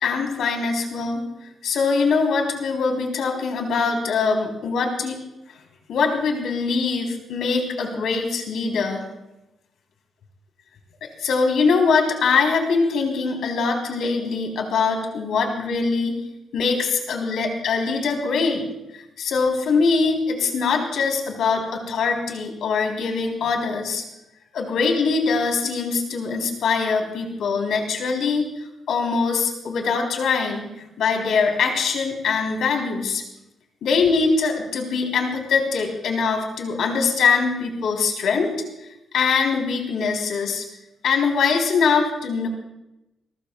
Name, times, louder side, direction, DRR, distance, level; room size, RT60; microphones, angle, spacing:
voice 1, 0.0-1.2 1.6-5.2 5.9-9.1 11.0-16.2 16.5-18.6 19.2-24.0 24.5-28.5 28.9-30.7 31.0-33.2 33.8-38.6 39.1-40.6 41.0-42.5, left 5 dB, 70° left, 2 dB, 3.5 m, -22 dB
30.0 x 14.5 x 2.3 m, 0.92 s
cardioid pair, 135°, 0 cm